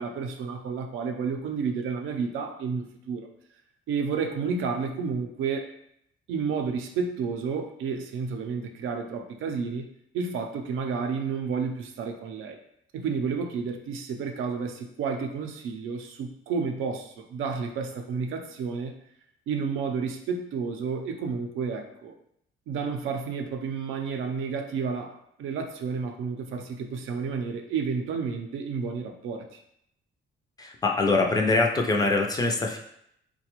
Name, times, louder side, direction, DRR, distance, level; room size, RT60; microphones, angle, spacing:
voice 1, 0.0-3.3 3.9-5.7 6.3-9.9 10.1-12.6 12.9-18.9 19.5-22.1 22.7-29.6, right 5 dB, 90° right, 4 dB, 0.5 m, -31 dB
voice 2, 30.6-32.8, left 3 dB, 20° left, 1 dB, 0.3 m, -23 dB
3.9 x 2.2 x 2.9 m, 0.73 s
cardioid pair, 150°, 20 cm